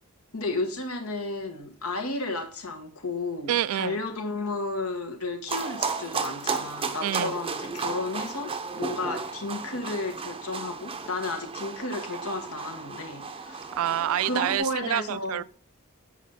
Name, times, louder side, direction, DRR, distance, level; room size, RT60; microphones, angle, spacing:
voice 1, 0.3-13.7 14.2-15.4, left 2 dB, 85° left, 1.4 m, -33 dB
voice 2, 3.5-4.0 7.0-7.4 13.7-15.4, right 11 dB, 75° right, 0.3 m, -27 dB
sound 1, 5.5-14.6, right 4 dB, 25° right, 0.6 m, -34 dB
7.4 x 5.0 x 4.1 m
head